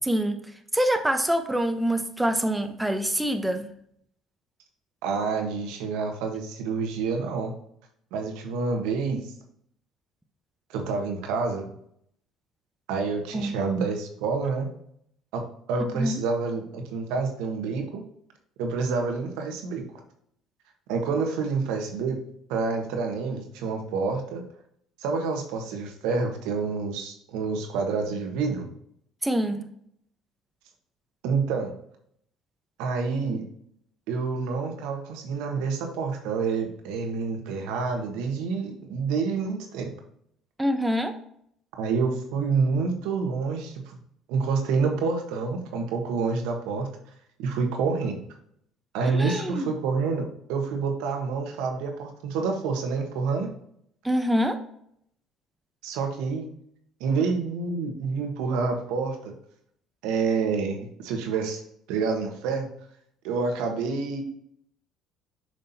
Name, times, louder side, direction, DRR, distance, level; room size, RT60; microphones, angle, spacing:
voice 1, 0.1-0.4 0.7-3.7 13.3-13.5 15.9-16.2 29.2-29.7 40.6-41.1 49.1-49.7 54.0-54.6, equal, 10° right, 7 dB, 0.9 m, -25 dB
voice 2, 5.0-7.5 8.1-9.3 10.7-11.7 12.9-14.7 15.3-18.0 18.6-19.9 20.9-22.2 22.5-24.4 25.0-28.7 31.2-31.7 32.8-33.4 34.1-39.9 41.8-43.9 44.3-46.9 47.4-48.2 48.9-53.5 55.8-56.5 57.0-59.3 60.0-61.6 61.9-62.7 63.2-64.2, right 4 dB, 75° right, 3 dB, 1.4 m, -28 dB
7.6 x 5.2 x 2.8 m, 0.69 s
hypercardioid pair, 60°, 0 cm